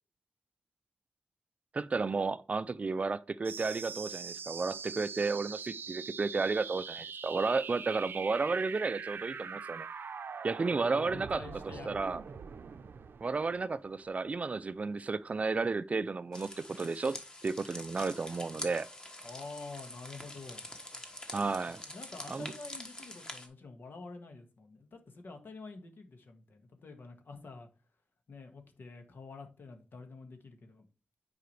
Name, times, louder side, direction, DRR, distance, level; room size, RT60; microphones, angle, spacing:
voice 1, 1.7-9.9 10.4-11.4 11.8-12.2 13.2-18.9 21.3-21.8 22.3-22.5, right 4 dB, 40° right, 0.4 m, -32 dB
sound 1, 3.4-14.5, right 6 dB, 85° right, 0.6 m, -43 dB
voice 2, 10.7-12.0 19.2-20.6 21.9-27.7 28.3-30.8, left 3 dB, 80° left, 1.7 m, -48 dB
sound 2, 16.3-23.5, left 1 dB, 20° left, 1.4 m, -46 dB
9.4 x 4.9 x 3.3 m
wide cardioid pair, 140°, 4 cm